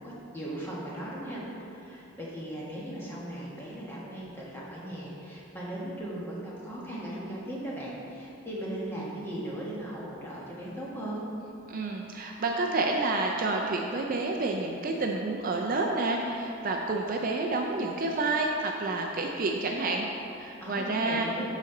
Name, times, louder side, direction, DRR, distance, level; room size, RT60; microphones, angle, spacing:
voice 1, 0.0-1.4 1.7-11.2 20.6-21.4, right 1 dB, 10° left, -6 dB, 1.3 m, -38 dB
voice 2, 11.7-20.1 20.4-21.3, right 3 dB, 40° right, 1 dB, 0.4 m, -29 dB
11.5 x 4.2 x 3.8 m, 2.8 s
head